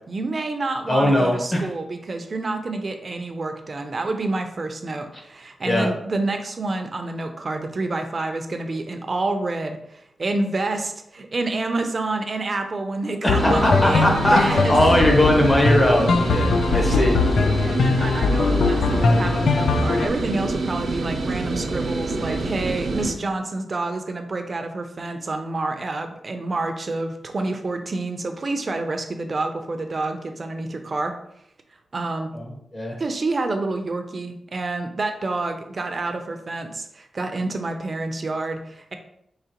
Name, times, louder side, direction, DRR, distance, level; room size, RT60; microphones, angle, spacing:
voice 1, 0.1-14.8 16.9-17.1 17.6-31.1 31.9-32.3 33.0-38.9, right 2 dB, 40° right, 6 dB, 0.5 m, -28 dB
voice 2, 0.9-1.7 5.6-5.9 13.2-17.2 32.3-32.9, left 1 dB, 25° left, 0 dB, 1.0 m, -20 dB
sound 1, 13.3-20.1, left 3 dB, 80° left, 0.4 m, -21 dB
sound 2, 13.3-23.1, right 3 dB, 85° right, 0.7 m, -27 dB
4.9 x 3.0 x 2.9 m, 0.75 s
wide cardioid pair, 120°, 0 cm